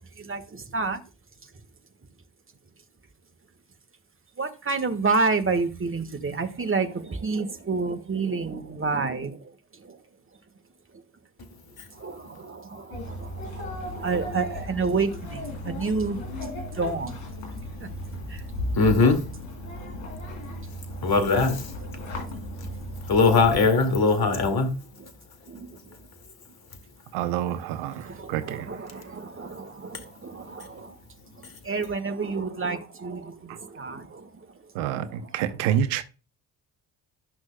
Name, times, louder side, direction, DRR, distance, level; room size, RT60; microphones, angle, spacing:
voice 1, 0.2-1.0 4.4-10.0 11.9-16.2 16.7-17.2 17.8-17.9 18.3-18.4 22.1-22.2 25.0-25.1 25.5-25.7 27.9-30.9 31.4-34.5 34.9-35.6, right 4 dB, 25° right, 1.5 m, -30 dB
sound 1, 12.9-23.6, left 1 dB, 70° left, 3.6 m, -35 dB
voice 2, 18.8-19.2 21.0-21.7 23.1-24.7, left 4 dB, 50° left, 2.2 m, -20 dB
voice 3, 27.1-28.7 33.5-33.6 34.7-36.0, right 10 dB, 75° right, 0.8 m, -28 dB
12.5 x 6.1 x 2.2 m
hypercardioid pair, 45°, 48 cm